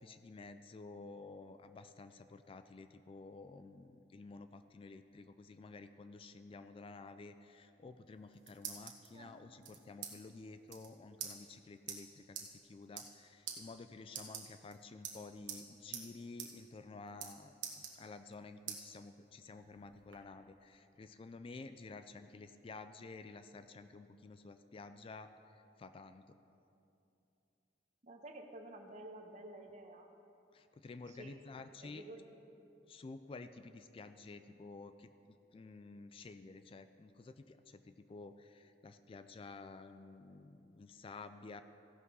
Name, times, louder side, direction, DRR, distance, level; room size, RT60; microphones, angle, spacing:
voice 1, 0.0-25.3 25.8-26.3 30.5-32.0 32.9-41.6, left 3 dB, 30° left, 10 dB, 0.3 m, -52 dB
sound 1, 8.1-9.1 9.6-10.1 10.4-10.5 10.7-10.9 11.2-11.3 11.9-12.0 12.4-12.5 12.8-13.2 13.5-13.6 14.1-14.7 15.0-15.6 15.9-16.1 16.4-16.5 16.8-17.3 17.6-18.3 18.7-18.8 19.3-20.2, right 8 dB, 80° right, 1.3 m, -45 dB
voice 2, 28.0-30.1 31.1-31.3 31.8-32.3, right 1 dB, 40° right, 3 dB, 1.0 m, -51 dB
15.5 x 6.1 x 5.5 m, 2.7 s
head